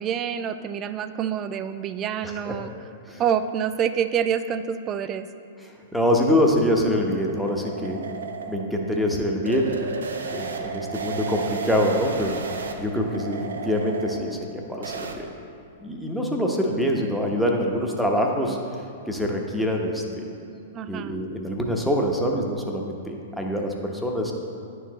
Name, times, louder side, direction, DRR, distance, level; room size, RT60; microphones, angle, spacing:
voice 1, 0.0-2.7 3.2-5.3 20.7-21.2, right 8 dB, 30° right, 11 dB, 0.3 m, -27 dB
voice 2, 2.2-2.6 3.1-3.2 5.9-8.1 8.5-12.4 12.8-15.3 15.8-18.6 19.1-20.3 20.9-24.3, equal, ahead, 0 dB, 0.9 m, -25 dB
sound 1, 6.4-15.2, right 5 dB, 75° right, 0.6 m, -34 dB
10.5 x 4.7 x 3.0 m, 2.6 s
figure-of-eight pair, 105°, 0 cm